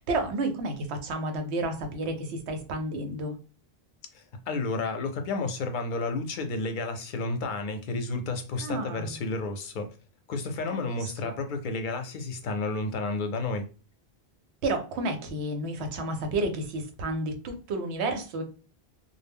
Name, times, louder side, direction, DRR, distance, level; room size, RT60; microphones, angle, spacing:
voice 1, 0.0-3.4 8.6-9.2 10.9-11.4 14.6-18.4, right 2 dB, 90° right, 0.9 m, -31 dB
voice 2, 4.1-9.9 10.3-13.7, left 3 dB, 60° left, 0.6 m, -31 dB
2.1 x 2.0 x 3.4 m
omnidirectional pair, 1.1 m